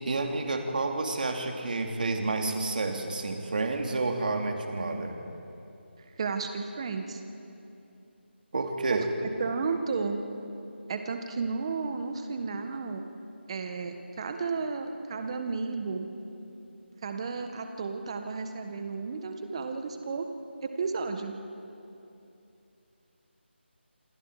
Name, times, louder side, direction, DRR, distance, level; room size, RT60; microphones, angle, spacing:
voice 1, 0.0-5.2 8.5-9.1, right 3 dB, 50° right, 3 dB, 2.8 m, -30 dB
voice 2, 6.2-7.2 8.9-9.0 9.4-10.2 10.9-13.0 13.5-16.1 17.0-20.3 20.6-21.3, right 4 dB, 30° right, 6 dB, 1.6 m, -33 dB
27.5 x 25.5 x 5.0 m, 2.8 s
figure-of-eight pair, 165°, 6 cm